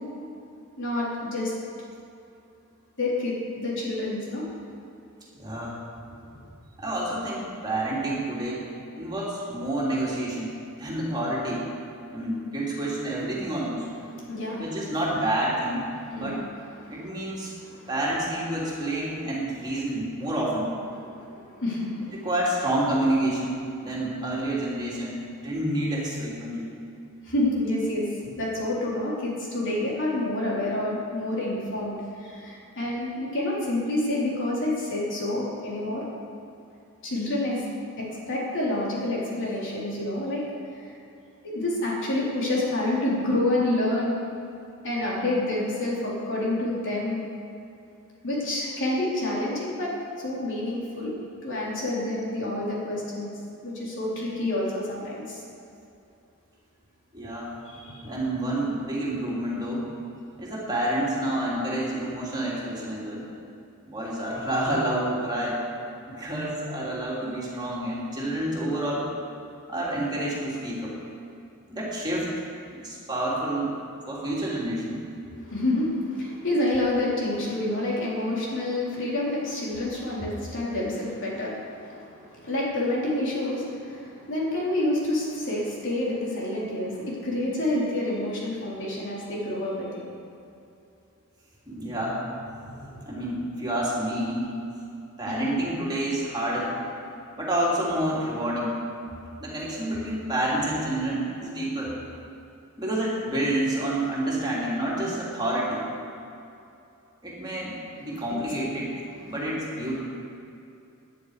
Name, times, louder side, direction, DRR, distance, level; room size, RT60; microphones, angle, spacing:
voice 1, 0.8-1.5 3.0-4.4 14.2-14.6 16.1-16.4 16.8-17.0 17.6-17.9 21.1-22.1 27.2-28.1 28.4-36.0 37.0-37.6 38.0-40.4 40.8-40.9 41.4-44.2 44.8-47.3 48.2-51.1 51.4-53.3 53.6-55.4 57.7-58.1 75.3-90.1 95.3-95.6 108.3-108.4, left 1 dB, 55° left, -5 dB, 3.8 m, -28 dB
voice 2, 5.4-5.8 6.8-8.7 8.9-10.5 10.8-11.7 12.1-13.9 14.6-16.4 16.9-17.5 17.9-20.7 22.1-25.2 25.4-26.7 57.1-57.6 58.0-59.9 60.4-63.3 63.8-65.6 66.1-69.1 69.7-71.0 71.7-72.4 72.8-73.8 74.1-75.0 91.7-92.2 93.0-94.5 95.2-96.7 97.4-98.8 99.4-102.0 102.8-105.9 107.2-110.0, right 1 dB, 20° right, -6 dB, 3.2 m, -28 dB
19.0 x 10.5 x 5.0 m, 2.7 s
head